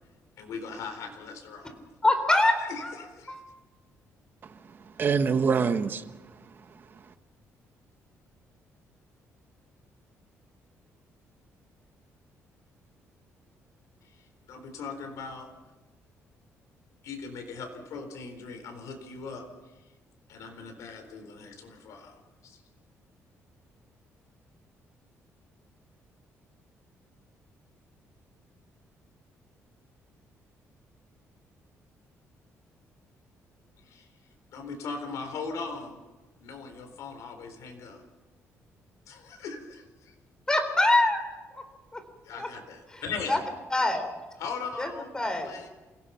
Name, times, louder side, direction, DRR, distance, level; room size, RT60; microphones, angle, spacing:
voice 1, 0.4-1.8 2.6-3.3 14.0-15.5 17.0-19.8 20.3-22.6 33.8-34.1 34.5-36.0 36.4-38.0 39.1-40.1 42.2-43.4 44.4-45.7, left 4 dB, 80° left, 4.2 m, -39 dB
voice 2, 2.0-2.6 2.8-2.9 3.3-3.4 40.5-41.2 41.5-41.6 41.9-42.0 42.4-42.5 43.3-43.4 43.7-44.1 44.8-44.9 45.1-45.5, left 2 dB, 15° left, 3.8 m, -23 dB
voice 3, 4.4-7.1, right 5 dB, 40° right, 1.3 m, -28 dB
28.0 x 17.5 x 5.8 m
cardioid pair, 135°, 5 cm